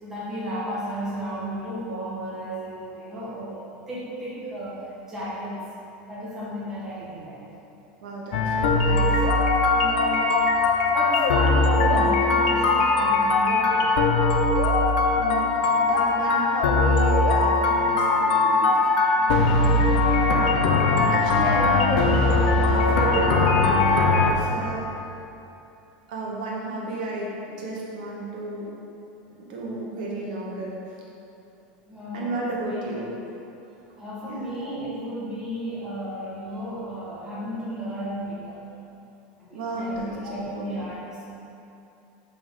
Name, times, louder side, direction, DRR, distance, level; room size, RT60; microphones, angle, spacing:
voice 1, 0.0-3.6 3.9-5.6 6.1-7.4 9.7-10.4 10.9-14.2 31.9-32.9 34.0-38.6 39.4-41.3, equal, 10° right, -10 dB, 1.3 m, -33 dB
voice 2, 8.0-9.3 15.1-18.8 19.2-19.8 21.1-24.8 26.1-28.7 29.4-30.8 32.1-33.1 34.2-34.5 39.5-40.1 40.5-40.6, right 2 dB, 70° right, -4 dB, 1.1 m, -32 dB
sound 1, 8.3-24.3, left 3 dB, 75° left, 0.6 m, -20 dB
7.7 x 3.6 x 3.7 m, 2.8 s
supercardioid pair, 175°, 5 cm